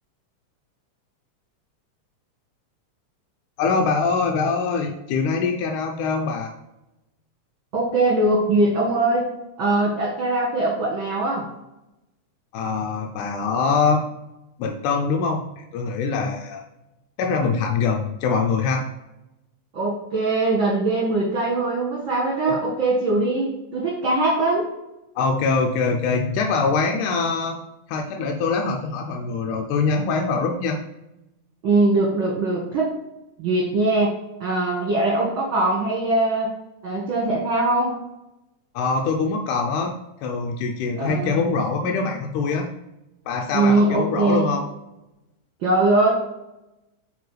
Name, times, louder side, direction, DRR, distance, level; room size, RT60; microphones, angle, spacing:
voice 1, 3.6-6.5 12.5-14.0 14.6-16.7 17.2-18.8 22.5-22.6 25.2-27.6 27.9-30.8 38.8-39.9 40.2-42.7 43.3-44.7, left 4 dB, 85° left, 2 dB, 2.2 m, -23 dB
voice 2, 7.7-9.3 9.6-11.5 19.7-24.7 31.6-32.9 33.4-34.1 34.4-36.5 36.8-38.0 41.0-41.4 43.5-44.5 45.6-46.1, right 2 dB, 50° right, -4 dB, 1.9 m, -21 dB
8.2 x 4.6 x 3.3 m, 0.94 s
omnidirectional pair, 3.5 m